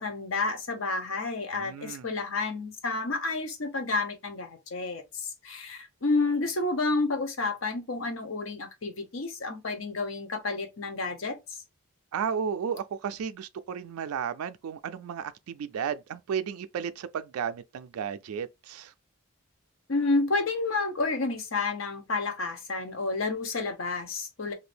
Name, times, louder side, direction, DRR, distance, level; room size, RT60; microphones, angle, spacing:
voice 1, 0.0-11.6 19.9-24.5, left 3 dB, 65° left, 0.8 m, -30 dB
voice 2, 1.5-2.1 12.1-18.9, right 7 dB, 85° right, 0.3 m, -33 dB
2.7 x 2.6 x 3.3 m
head